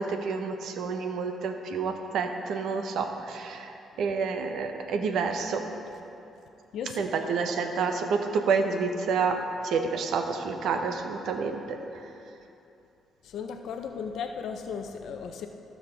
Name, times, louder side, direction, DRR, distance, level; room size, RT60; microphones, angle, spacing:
voice 1, 0.0-3.7 4.0-5.6 7.0-9.4 9.6-11.8, right 5 dB, 75° right, 5 dB, 0.8 m, -29 dB
voice 2, 6.7-7.0 13.2-15.5, left 6 dB, 75° left, 5 dB, 0.5 m, -36 dB
15.5 x 6.5 x 3.4 m, 2.8 s
cardioid pair, 90°, 0 cm